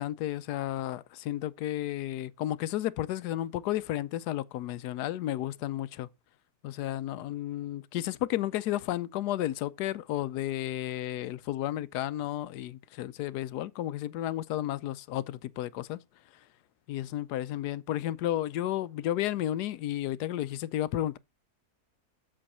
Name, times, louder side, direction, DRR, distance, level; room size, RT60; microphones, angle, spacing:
voice 1, 0.0-6.1 6.6-16.0 16.9-21.2, left 13 dB, 85° left, 1.2 m, -32 dB
7.7 x 6.8 x 4.2 m
omnidirectional pair, 1.7 m